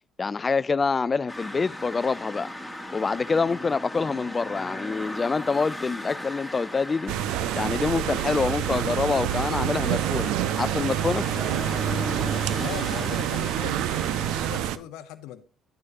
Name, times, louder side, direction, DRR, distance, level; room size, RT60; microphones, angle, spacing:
voice 1, 0.2-2.5 2.9-7.1 7.6-11.3, left 4 dB, 30° left, 0.4 m, -26 dB
sound 1, 1.3-14.6, left 1 dB, ahead, 2.4 m, -37 dB
sound 2, 7.1-14.8, right 12 dB, 75° right, 0.5 m, -27 dB
voice 2, 12.6-15.4, left 13 dB, 75° left, 0.7 m, -40 dB
11.0 x 9.6 x 2.5 m
hypercardioid pair, 60°, 0 cm